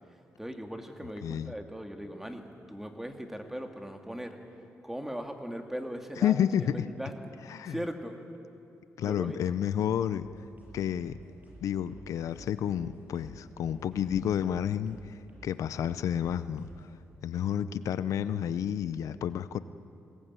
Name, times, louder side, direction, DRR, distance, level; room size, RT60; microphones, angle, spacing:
voice 1, 0.4-4.4 4.8-7.1 7.6-8.2 9.0-9.5, equal, 5° right, 5 dB, 2.2 m, -39 dB
voice 2, 1.2-1.5 6.2-6.9 7.5-7.8 9.0-10.3 10.7-11.2 11.6-16.7 17.2-19.6, left 9 dB, 85° left, 14 dB, 0.6 m, -30 dB
sound 1, 10.2-17.0, right 1 dB, 35° right, 7.1 m, -54 dB
21.0 x 19.0 x 9.6 m, 2.6 s
cardioid pair, 100°, 5 cm